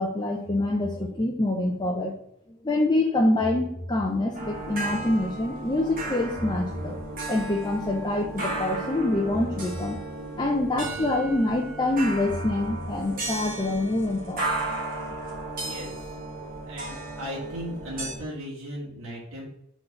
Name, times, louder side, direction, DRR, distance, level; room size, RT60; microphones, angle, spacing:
voice 1, 0.0-2.1 2.5-7.0 7.3-10.0 10.4-14.4 16.4-16.5, left 2 dB, 20° left, 1 dB, 0.6 m, -26 dB
sound 1, 4.3-18.1, right 2 dB, 40° right, 1.6 m, -34 dB
voice 2, 15.6-16.1 16.7-19.5, equal, 65° right, -5 dB, 1.9 m, -37 dB
4.5 x 4.0 x 5.3 m, 0.79 s
head